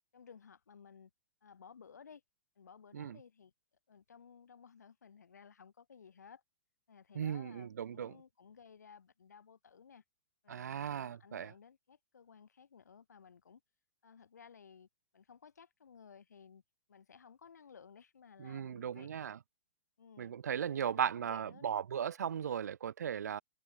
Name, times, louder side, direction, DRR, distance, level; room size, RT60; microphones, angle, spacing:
voice 1, 0.1-1.1 1.4-2.2 2.6-3.5 3.9-6.4 6.9-10.0 10.4-13.6 14.0-14.9 15.1-16.6 16.9-19.1 20.0-21.7, left 6 dB, 85° left, 1.9 m, -57 dB
voice 2, 7.1-8.1 10.5-11.5 18.4-19.4 20.2-23.4, right 8 dB, 80° right, 0.4 m, -37 dB
hypercardioid pair, 125°, 9 cm